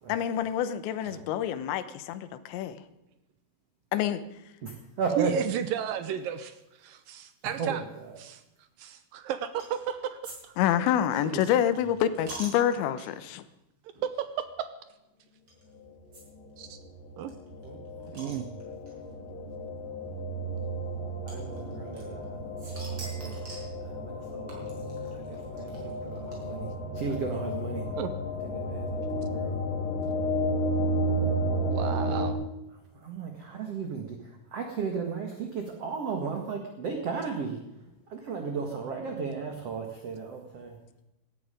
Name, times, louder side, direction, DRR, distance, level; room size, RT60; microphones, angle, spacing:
voice 1, 0.1-2.8 3.9-4.2 10.6-13.4, left 10 dB, 90° left, 12 dB, 3.3 m, -27 dB
voice 2, 4.6-5.3 7.6-7.8 11.2-11.4 17.6-18.5 21.3-22.4 22.9-23.4 23.9-26.7 26.9-27.9 28.5-29.6 32.9-34.2 34.5-37.6 38.1-40.8, right 5 dB, 50° right, 3 dB, 2.0 m, -35 dB
voice 3, 5.2-6.5 6.8-7.8 8.2-8.4 8.8-10.5 14.0-14.7 16.6-16.8 17.2-17.3 18.1-18.5 28.0-28.1 31.7-32.4, right 9 dB, 80° right, 11 dB, 2.1 m, -33 dB
sound 1, 9.6-9.9 10.2-10.4 10.6-13.3 13.9-14.1 14.4-14.5 15.5-15.6 16.1-16.2 16.5-16.6 16.8-16.9 17.3-18.9 19.8-19.9 21.3-22.3 22.6-23.7 24.5-26.8, right 2 dB, 30° right, 6.1 m, -45 dB
sound 2, 16.2-32.3, equal, 55° left, 4.5 m, -32 dB
18.0 x 14.0 x 5.1 m, 0.90 s
omnidirectional pair, 5.0 m